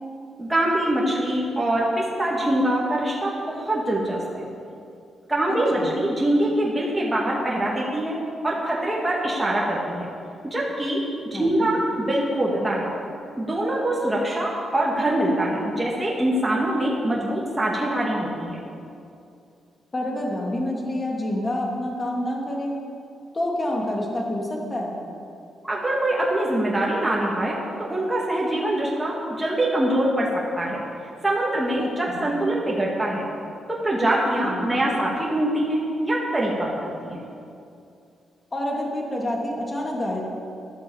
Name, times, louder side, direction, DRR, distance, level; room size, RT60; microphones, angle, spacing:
voice 1, 0.4-4.4 5.3-8.2 8.4-10.1 10.5-11.0 11.4-12.9 13.4-18.6 25.6-30.3 30.6-30.8 31.2-33.2 33.7-37.2, right 1 dB, 10° right, -4 dB, 2.1 m, -24 dB
voice 2, 5.5-6.0 11.3-11.7 19.9-22.7 23.3-25.0 31.8-32.3 34.4-34.9 38.5-40.2, left 1 dB, 25° left, -1 dB, 2.7 m, -28 dB
12.0 x 10.5 x 7.3 m, 2.5 s
cardioid pair, 120°, 0 cm